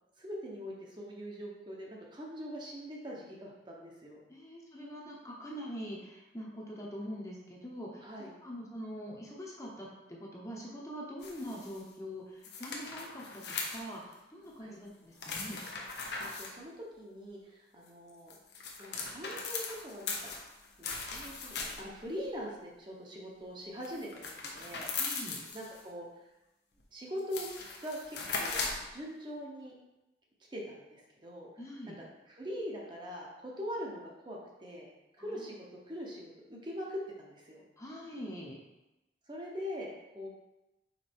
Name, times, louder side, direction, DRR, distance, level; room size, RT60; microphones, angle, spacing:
voice 1, 0.2-4.2 8.0-8.3 14.6-14.8 16.2-18.3 18.8-20.3 20.8-26.3 26.9-27.5 27.8-29.7 30.5-31.5 32.0-37.7 39.3-40.3, equal, 25° right, -2 dB, 0.9 m, -43 dB
voice 2, 4.3-15.6 24.9-25.4 31.6-32.0 35.2-35.4 37.8-38.6, equal, 15° left, -3 dB, 1.0 m, -44 dB
sound 1, 11.2-11.8 12.4-14.1 15.2-16.5 18.1-22.0 23.8-25.8 26.8-26.9 27.2-28.9, left 4 dB, 60° left, 0.9 m, -39 dB
5.2 x 4.1 x 4.4 m, 0.98 s
head